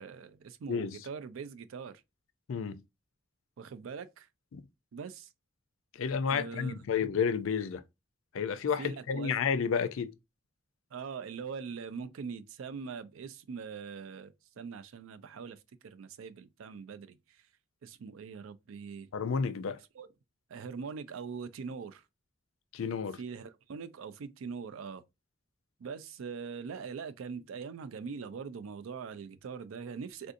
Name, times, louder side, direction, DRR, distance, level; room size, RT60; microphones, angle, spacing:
voice 1, 0.0-2.0 3.6-4.3 4.9-5.3 6.3-6.8 8.8-9.3 10.9-17.4 17.8-19.1 19.9-20.1 20.5-22.0 23.2-25.0 25.8-30.3, right 5 dB, 90° right, 0.4 m, -42 dB
voice 2, 2.5-2.8 4.5-4.6 5.9-7.8 8.3-10.1 19.1-19.8 22.7-23.2, left 6 dB, 85° left, 0.4 m, -31 dB
3.5 x 2.5 x 2.5 m
head